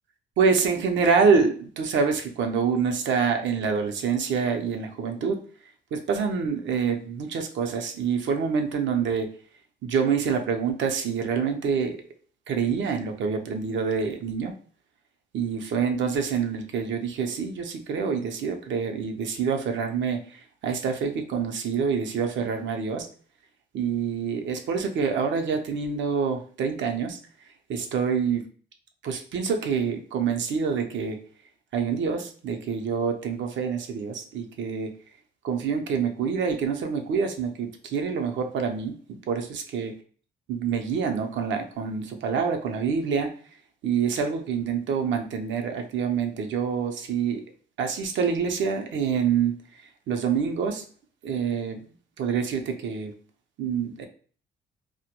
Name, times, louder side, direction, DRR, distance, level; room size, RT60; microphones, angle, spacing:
voice 1, 0.4-5.4 5.9-9.3 9.8-12.0 12.5-14.5 15.3-23.1 23.7-27.2 27.7-28.4 29.0-31.2 31.7-34.9 35.4-39.9 40.5-43.3 43.8-47.4 47.8-49.5 50.1-50.8 51.2-51.8 52.2-53.1 53.6-54.1, right 6 dB, 70° right, 5 dB, 0.5 m, -26 dB
2.1 x 2.1 x 2.8 m, 0.42 s
cardioid pair, 90°, 20 cm